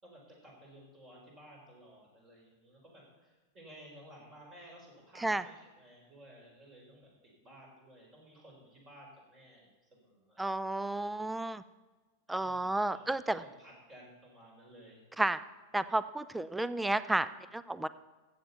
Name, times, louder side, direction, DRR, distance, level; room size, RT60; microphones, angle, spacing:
voice 1, 0.0-7.1 7.4-10.6 12.4-15.1, equal, 25° right, -1 dB, 4.8 m, -55 dB
voice 2, 10.4-11.6 12.3-13.4 15.2-15.4 15.7-17.9, right 2 dB, 5° right, 14 dB, 0.5 m, -32 dB
14.5 x 8.0 x 5.6 m, 1.2 s
figure-of-eight pair, 90°, 0 cm